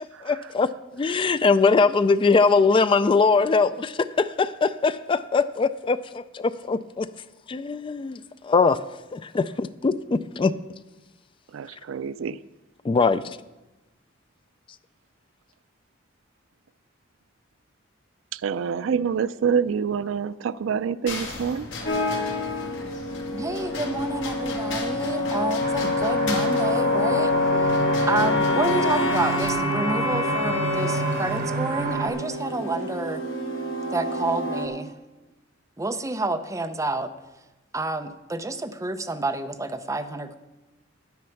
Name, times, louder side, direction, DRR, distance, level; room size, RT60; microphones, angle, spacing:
voice 1, 0.2-0.7 0.9-7.1 7.5-8.8 9.1-10.5 12.8-13.4, left 4 dB, 25° left, 14 dB, 0.3 m, -21 dB
voice 2, 11.5-12.4 18.3-21.7, right 7 dB, 90° right, 17 dB, 0.4 m, -26 dB
sound 1, 21.1-29.5, left 2 dB, 70° left, 1.9 m, -37 dB
sound 2, 21.8-34.7, left 2 dB, 85° left, 1.6 m, -26 dB
voice 3, 23.3-27.7 28.1-33.2 33.9-34.9 35.8-37.1 37.7-40.3, right 2 dB, 15° right, 8 dB, 0.6 m, -29 dB
sound 3, 25.6-32.1, right 4 dB, 55° right, 1.4 m, -29 dB
10.0 x 9.5 x 5.8 m, 1.0 s
head